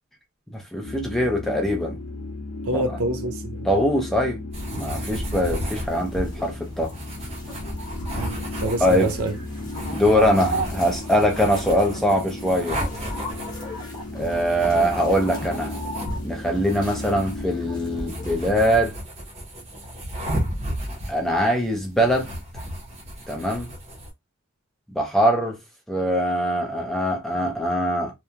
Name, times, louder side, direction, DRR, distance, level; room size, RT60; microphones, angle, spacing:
voice 1, 0.5-2.0 2.7-3.0 3.6-4.4 4.7-6.9 8.8-9.1 9.9-12.8 14.1-15.7 16.2-19.0 21.1-22.3 23.3-23.7 24.9-25.6 25.9-28.1, equal, ahead, 0.5 m, -22 dB
sound 1, 0.8-18.9, left 2 dB, 75° left, 0.7 m, -35 dB
voice 2, 2.7-3.7 8.1-9.4, right 2 dB, 80° right, 0.6 m, -27 dB
sound 2, 4.5-24.1, equal, 30° right, 0.8 m, -34 dB
sound 3, 5.2-18.5, right 2 dB, 20° left, 0.9 m, -38 dB
2.8 x 2.3 x 2.3 m
head